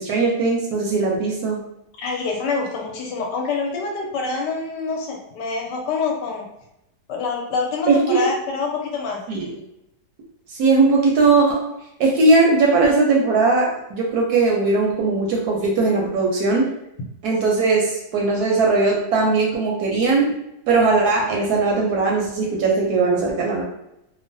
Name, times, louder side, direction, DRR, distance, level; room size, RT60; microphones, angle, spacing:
voice 1, 0.0-1.6 7.9-8.3 9.3-9.5 10.6-11.7 12.0-16.7 17.2-20.4 20.7-23.6, right 3 dB, 70° right, -2 dB, 1.0 m, -19 dB
voice 2, 2.0-6.4 7.1-9.2, left 4 dB, 75° left, 0 dB, 1.2 m, -26 dB
3.0 x 2.0 x 2.6 m, 0.82 s
omnidirectional pair, 1.9 m